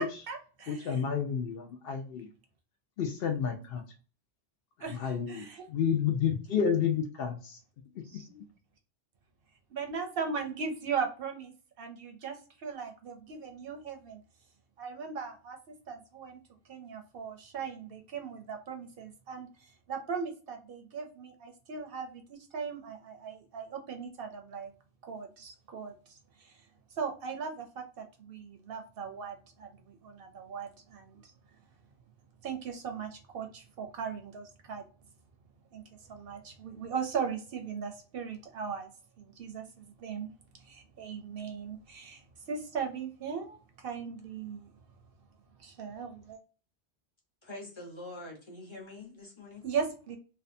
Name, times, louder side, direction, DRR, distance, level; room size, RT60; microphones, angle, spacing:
voice 1, 0.0-1.0 4.8-5.7 8.0-8.3 9.7-11.5 11.8-14.2 14.8-15.6 15.9-16.4 16.7-19.5 19.9-24.7 25.0-26.6 27.0-31.3 32.4-34.9 35.7-35.8 36.1-38.9 39.2-40.3 40.6-44.7 45.6-46.4 49.6-50.2, right 6 dB, 65° right, 5 dB, 0.7 m, -38 dB
voice 2, 0.7-2.3 3.0-3.8 5.0-7.6 8.3-8.4, left 7 dB, 65° left, 4 dB, 0.7 m, -30 dB
voice 3, 47.4-49.6, left 2 dB, 30° left, -2 dB, 0.8 m, -45 dB
2.6 x 2.2 x 2.5 m, 0.37 s
omnidirectional pair, 1.1 m